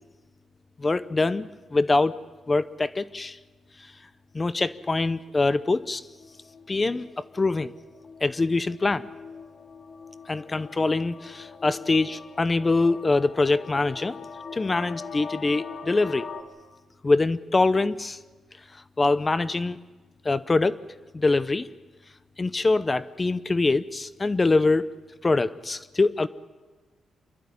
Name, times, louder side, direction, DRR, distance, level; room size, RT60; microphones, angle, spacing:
voice 1, 0.8-2.2 2.5-3.4 4.3-6.0 6.7-7.7 8.2-9.1 10.3-14.2 14.5-16.3 17.0-18.2 19.0-19.8 20.2-20.8 21.1-21.7 22.4-24.9 25.2-26.3, left 3 dB, 25° left, 15 dB, 0.7 m, -24 dB
sound 1, 4.7-16.4, left 5 dB, 55° left, 1.9 m, -43 dB
27.0 x 12.0 x 9.9 m, 1.3 s
cardioid pair, 95°, 0 cm